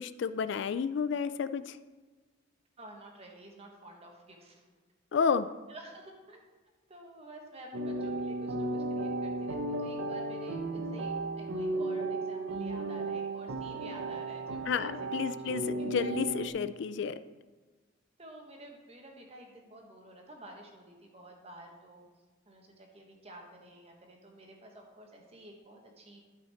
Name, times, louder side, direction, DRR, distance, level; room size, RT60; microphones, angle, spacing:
voice 1, 0.0-1.8 5.1-5.5 14.7-17.2, left 6 dB, 60° left, 13 dB, 0.3 m, -31 dB
voice 2, 2.8-4.6 5.7-6.4 6.9-14.9 15.2-15.9 18.2-22.1 22.4-26.2, right 1 dB, 30° right, 1 dB, 1.4 m, -51 dB
sound 1, 7.7-16.5, right 2 dB, 85° right, 0.8 m, -35 dB
12.0 x 5.7 x 4.4 m, 1.3 s
head